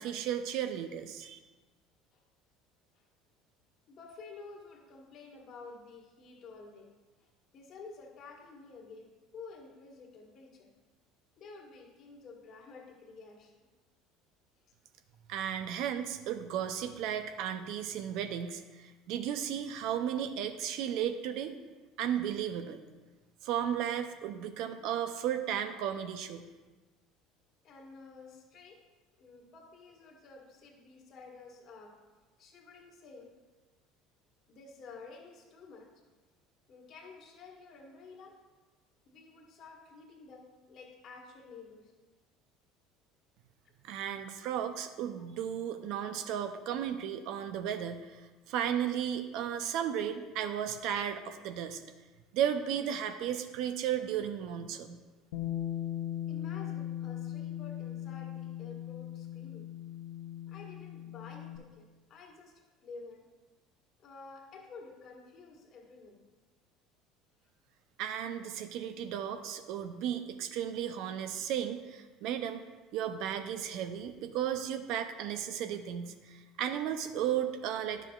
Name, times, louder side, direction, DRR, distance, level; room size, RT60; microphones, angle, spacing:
voice 1, 0.0-1.4 15.3-21.6 22.0-22.8 23.4-26.5 43.8-48.2 48.5-51.8 52.3-55.0 68.0-72.6 72.9-78.1, right 9 dB, 65° right, 8 dB, 0.6 m, -34 dB
voice 2, 3.9-6.9 7.2-10.7 11.4-13.7 27.6-28.8 29.2-32.0 32.4-33.3 34.5-35.9 36.7-38.4 39.0-41.9 45.2-45.3 56.3-59.7 60.5-63.3 64.0-66.2, left 4 dB, 50° left, 1 dB, 1.5 m, -51 dB
Bass guitar, 55.3-61.6, left 12 dB, 80° left, 0.7 m, -39 dB
10.0 x 6.7 x 2.4 m, 1.2 s
hypercardioid pair, 75°, 0 cm